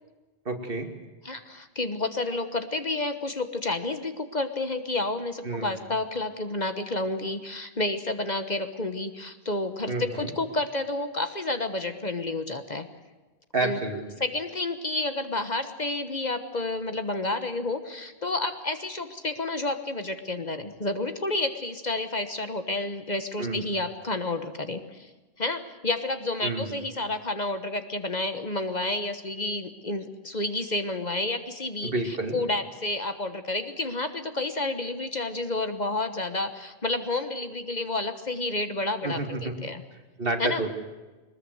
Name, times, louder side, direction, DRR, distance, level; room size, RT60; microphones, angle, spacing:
voice 1, 0.4-0.9 5.4-5.7 9.9-10.3 13.5-14.0 23.4-23.7 26.4-26.7 31.8-32.4 39.0-39.5 40.2-40.7, right 2 dB, 55° right, 4 dB, 2.6 m, -29 dB
voice 2, 1.2-12.9 13.6-13.8 14.2-25.1 25.4-39.8 40.4-40.6, left 2 dB, 40° left, 8 dB, 1.3 m, -30 dB
22.0 x 20.5 x 8.0 m, 1.2 s
omnidirectional pair, 1.1 m